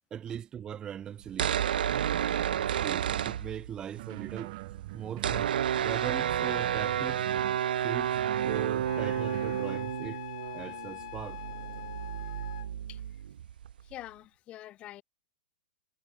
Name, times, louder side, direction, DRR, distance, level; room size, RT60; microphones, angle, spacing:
voice 1, 0.1-1.5 2.8-4.6 4.9-7.2 7.8-8.2 8.4-10.2 10.5-11.4, right 9 dB, 15° right, 1.6 m, -39 dB
sound 1, 1.2-4.0 4.2-4.3 4.5-13.9, right 10 dB, 90° right, 0.5 m, -31 dB
sound 2, 1.9-3.4 3.9-5.5 6.0-7.6 8.1-9.7, right 21 dB, 45° right, 2.5 m, -42 dB
Wind instrument woodwind instrument, 8.8-12.7, left 18 dB, 50° left, 3.2 m, -43 dB
voice 2, 12.9-13.2 13.8-15.0, left 14 dB, 25° left, 4.9 m, -46 dB
supercardioid pair, 160°, 5 cm